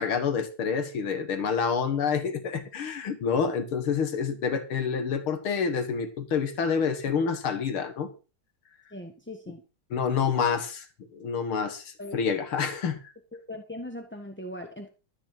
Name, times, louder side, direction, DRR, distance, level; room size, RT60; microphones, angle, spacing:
voice 1, 0.0-8.1 9.9-10.8 11.1-13.0, left 6 dB, 85° left, 9 dB, 2.5 m, -28 dB
voice 2, 8.9-9.6 12.0-12.2 13.3-14.9, left 1 dB, 5° left, 4 dB, 1.1 m, -39 dB
13.5 x 5.2 x 9.0 m, 0.33 s
omnidirectional pair, 2.3 m